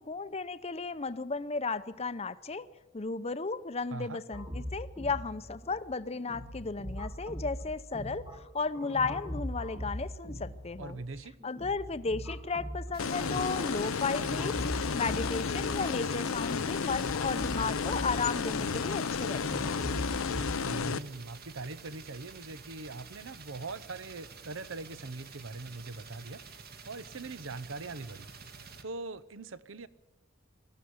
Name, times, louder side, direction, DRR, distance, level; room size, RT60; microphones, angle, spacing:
voice 1, 0.1-2.7 2.9-11.0 11.4-14.5 14.9-19.8, left 4 dB, 30° left, 13 dB, 0.7 m, -34 dB
voice 2, 3.9-4.2 10.8-11.4 20.6-26.4 26.8-29.9, right 3 dB, 70° right, 17 dB, 0.8 m, -42 dB
sound 1, 4.3-20.5, equal, 15° right, 1.9 m, -41 dB
sound 2, 12.9-28.8, right 5 dB, 50° right, 1.7 m, -50 dB
sound 3, 13.0-21.0, left 5 dB, 85° left, 0.6 m, -32 dB
19.5 x 14.0 x 9.8 m, 1.1 s
head